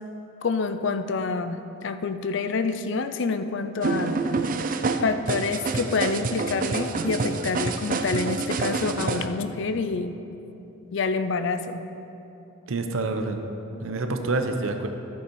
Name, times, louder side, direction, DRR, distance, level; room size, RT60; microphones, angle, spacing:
voice 1, 0.4-4.2 5.0-10.2 10.9-11.9, left 4 dB, 60° left, 10 dB, 0.4 m, -27 dB
sound 1, 3.8-9.3, right 3 dB, 40° right, 0.4 m, -27 dB
voice 2, 12.7-13.4 13.8-14.9, right 3 dB, 80° right, 6 dB, 0.7 m, -27 dB
12.0 x 7.0 x 4.7 m, 3.0 s
head